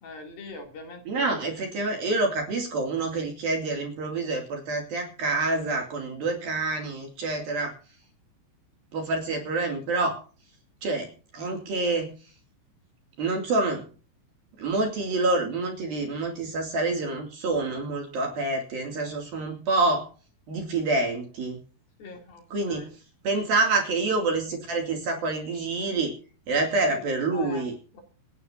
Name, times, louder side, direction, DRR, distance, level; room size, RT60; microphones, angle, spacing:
voice 1, 0.0-1.5 22.0-22.4 22.7-22.9 26.9-27.0 27.3-27.7 27.9-28.0, left 3 dB, 55° left, 2 dB, 4.4 m, -41 dB
voice 2, 1.1-7.7 8.9-10.2 10.8-12.1 13.2-13.9 14.6-20.1 20.5-21.6 22.5-22.9 23.2-26.1 26.5-27.7, right 3 dB, 55° right, 2 dB, 3.9 m, -27 dB
26.5 x 11.0 x 2.7 m, 0.38 s
omnidirectional pair, 5.5 m